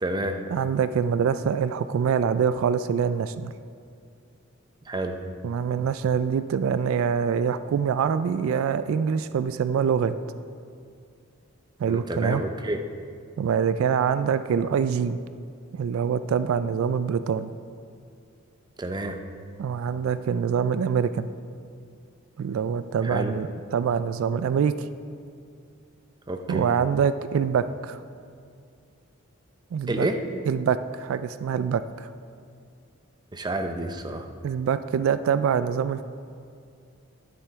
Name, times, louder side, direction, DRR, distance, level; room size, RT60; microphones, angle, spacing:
voice 1, 0.0-0.4 4.9-5.2 11.9-12.8 18.8-19.2 23.0-23.3 26.3-26.7 29.9-30.2 33.3-34.3, right 1 dB, 20° right, 6 dB, 0.6 m, -29 dB
voice 2, 0.5-3.5 5.4-10.2 11.8-12.4 13.4-15.2 15.7-17.5 19.6-21.3 22.4-24.9 26.5-28.0 29.7-30.1 30.5-32.1 34.4-36.0, right 7 dB, 75° right, 13 dB, 0.3 m, -25 dB
11.5 x 9.5 x 3.5 m, 2.3 s
head